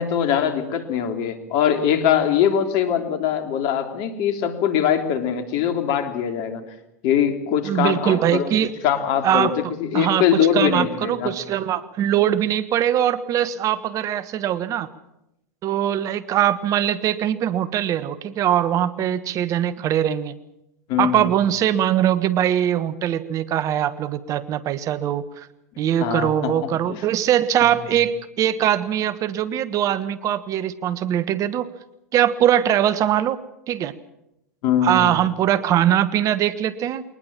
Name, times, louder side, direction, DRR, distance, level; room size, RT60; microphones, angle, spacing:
voice 1, 0.0-6.6 7.0-8.5 8.8-9.5 9.8-11.4 20.9-21.3 26.0-26.5 26.9-27.0 34.6-35.2, left 8 dB, 55° left, 7 dB, 3.2 m, -22 dB
voice 2, 7.7-8.7 9.2-9.5 9.9-14.9 15.6-20.3 21.0-25.5 25.8-31.7 32.1-33.4 33.7-33.9 34.8-37.0, right 10 dB, 40° right, 15 dB, 1.3 m, -21 dB
23.0 x 19.5 x 7.4 m, 0.85 s
hypercardioid pair, 90°, 8 cm